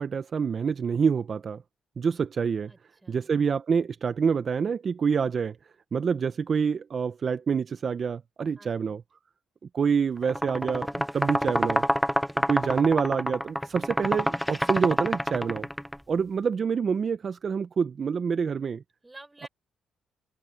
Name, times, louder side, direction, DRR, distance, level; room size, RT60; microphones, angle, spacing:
voice 1, 0.0-1.6 2.0-2.7 3.1-5.6 5.9-9.0 9.7-11.8 12.5-15.7 16.1-18.8, right 6 dB, 45° right, 0.7 m, -27 dB
voice 2, 2.7-3.3 8.6-9.0 19.0-19.5, right 2 dB, 15° right, 7.3 m, -50 dB
sound 1, 10.2-16.0, equal, ahead, 0.9 m, -27 dB
cardioid pair, 90°, 0 cm